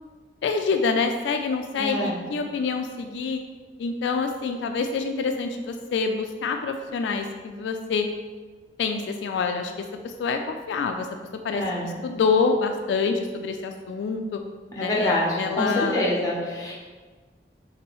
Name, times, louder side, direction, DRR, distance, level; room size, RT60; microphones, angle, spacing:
voice 1, 0.4-3.4 3.8-8.1 8.8-9.7 10.0-11.1 11.4-14.4 14.8-16.1, left 4 dB, 80° left, 5 dB, 0.3 m, -26 dB
voice 2, 1.8-2.1 11.5-11.8 14.7-16.7, left 1 dB, 20° left, -5 dB, 1.0 m, -25 dB
5.9 x 2.6 x 3.1 m, 1.4 s
head